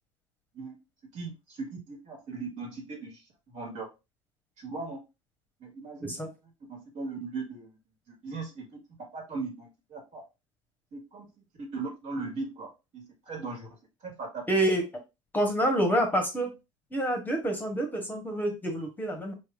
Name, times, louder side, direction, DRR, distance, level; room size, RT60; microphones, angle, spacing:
voice 1, 1.1-3.9 4.6-5.0 5.6-6.2 6.7-7.8 8.2-8.7 9.1-10.2 10.9-11.3 11.6-13.7 14.0-14.4, right 3 dB, 50° right, 0 dB, 1.8 m, -38 dB
voice 2, 14.5-14.8 15.3-16.5 16.9-19.3, right 1 dB, 10° left, 3 dB, 1.1 m, -27 dB
4.5 x 2.9 x 2.4 m, 0.26 s
figure-of-eight pair, 70°, 16 cm